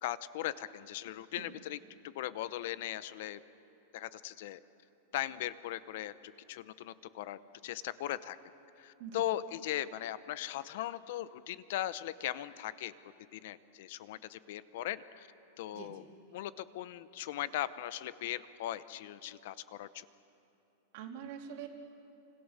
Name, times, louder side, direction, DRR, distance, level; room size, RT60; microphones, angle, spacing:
voice 1, 0.0-3.4 3.9-4.6 5.1-8.4 8.8-12.9 13.3-15.3 15.6-16.0 16.3-20.1, left 13 dB, 50° left, 15 dB, 0.8 m, -39 dB
voice 2, 20.9-21.7, right 8 dB, 45° right, 3 dB, 2.7 m, -45 dB
29.0 x 25.5 x 6.6 m, 2.9 s
supercardioid pair, 175°, 0 cm